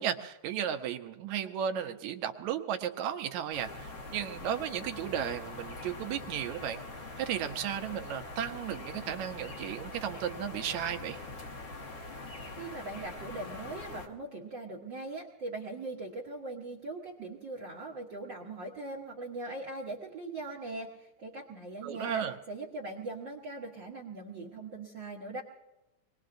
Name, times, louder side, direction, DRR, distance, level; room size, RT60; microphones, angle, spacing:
voice 1, 0.0-6.8 7.2-11.2 21.8-22.4, right 9 dB, 75° right, 7 dB, 1.9 m, -34 dB
sound 1, 3.5-14.1, left 2 dB, 45° left, 1.9 m, -43 dB
voice 2, 12.6-25.4, right 2 dB, 55° right, -2 dB, 1.3 m, -40 dB
26.0 x 21.0 x 2.5 m, 1.0 s
omnidirectional pair, 3.6 m